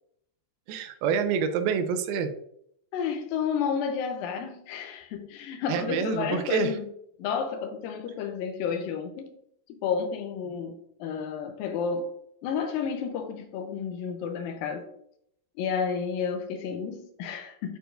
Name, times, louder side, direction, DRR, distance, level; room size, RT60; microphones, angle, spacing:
voice 1, 0.7-2.3 5.7-6.8, right 6 dB, 80° right, 9 dB, 2.3 m, -27 dB
voice 2, 2.9-6.9 7.2-9.3 9.7-12.1 12.4-14.9 15.6-17.8, left 6 dB, 90° left, 5 dB, 2.0 m, -31 dB
9.1 x 4.4 x 2.5 m, 0.73 s
omnidirectional pair, 4.7 m